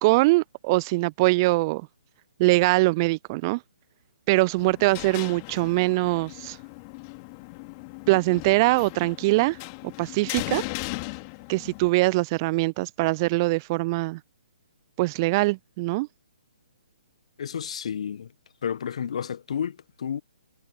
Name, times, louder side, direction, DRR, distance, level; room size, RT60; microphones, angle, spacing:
voice 1, 0.0-1.8 2.4-3.6 4.3-6.6 8.1-9.6 10.0-10.6 11.5-14.2 15.0-16.1, right 23 dB, 30° right, 0.6 m, -22 dB
sound 1, 4.6-11.9, left 32 dB, 30° left, 3.4 m, -38 dB
voice 2, 17.4-18.3 18.6-20.2, left 8 dB, 50° left, 1.6 m, -31 dB
figure-of-eight pair, 130°, 4 cm